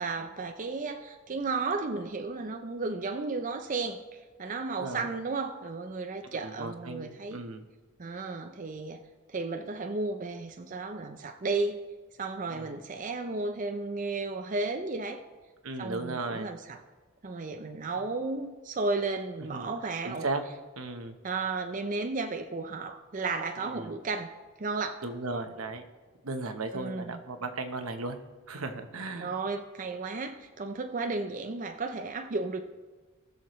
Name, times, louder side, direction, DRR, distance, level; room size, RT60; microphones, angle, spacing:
voice 1, 0.0-7.4 8.0-9.0 9.3-11.8 12.2-15.2 15.8-16.8 17.2-20.2 21.2-24.3 24.6-24.9 26.7-27.2 29.2-32.6, right 3 dB, 40° right, 6 dB, 0.5 m, -33 dB
voice 2, 6.4-7.6 12.5-12.7 15.6-16.5 19.5-19.7 20.0-20.4 20.8-21.2 23.7-23.9 25.0-25.8 26.2-28.2 28.5-29.3, right 3 dB, 85° right, 7 dB, 1.0 m, -36 dB
19.5 x 6.6 x 3.1 m, 1.4 s
head